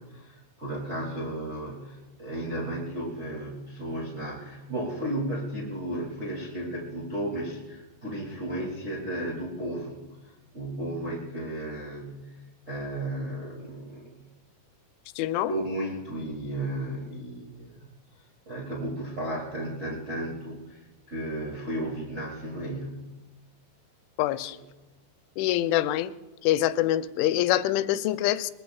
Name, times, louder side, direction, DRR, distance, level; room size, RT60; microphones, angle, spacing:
voice 1, 0.0-10.0 10.2-12.4 12.7-14.3 15.5-17.9 18.1-23.0, right 1 dB, 20° right, -3 dB, 1.8 m, -34 dB
voice 2, 15.2-15.5 24.2-24.6 25.4-26.1 26.4-28.5, left 13 dB, 90° left, 12 dB, 3.0 m, -25 dB
22.5 x 21.5 x 2.3 m, 1.2 s
omnidirectional pair, 5.3 m